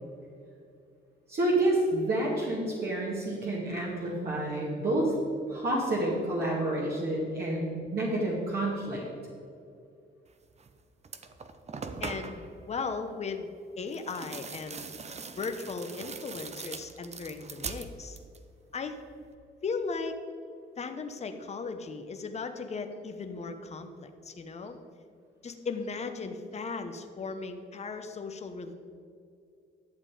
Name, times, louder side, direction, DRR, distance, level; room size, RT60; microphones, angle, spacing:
voice 1, 1.3-5.1 5.5-9.0, right 1 dB, 50° right, -5 dB, 2.2 m, -29 dB
sound 1, 10.6-10.7 11.0-12.5 13.9-18.5 18.7-19.3, right 4 dB, 35° right, 0.7 m, -42 dB
voice 2, 12.0-13.5 13.8-14.8 15.4-18.2 18.7-19.0 19.6-20.2 20.8-24.8 25.4-28.7, left 4 dB, 35° left, 6 dB, 0.9 m, -37 dB
11.5 x 7.3 x 4.9 m, 2.5 s
cardioid pair, 90°, 20 cm